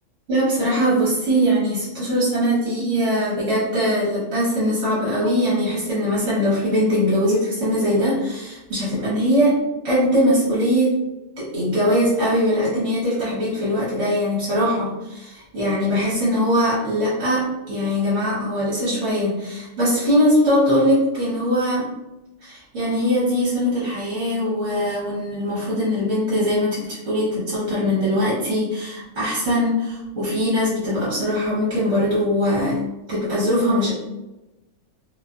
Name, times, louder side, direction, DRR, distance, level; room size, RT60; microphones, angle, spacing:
voice 1, 0.3-9.6 9.8-11.0 11.4-21.9 22.4-32.8 33.1-33.9, equal, 65° right, -8 dB, 1.2 m, -21 dB
2.6 x 2.3 x 2.2 m, 1.0 s
omnidirectional pair, 1.5 m